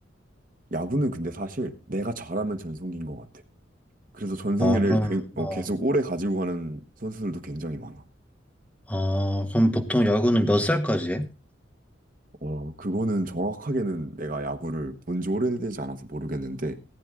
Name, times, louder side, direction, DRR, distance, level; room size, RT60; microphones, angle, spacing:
voice 1, 0.7-3.3 4.1-8.0 12.4-16.8, right 1 dB, 45° right, 7 dB, 1.4 m, -29 dB
voice 2, 4.6-5.6 8.9-11.3, equal, 5° left, 4 dB, 1.5 m, -24 dB
18.5 x 9.2 x 3.8 m, 0.32 s
head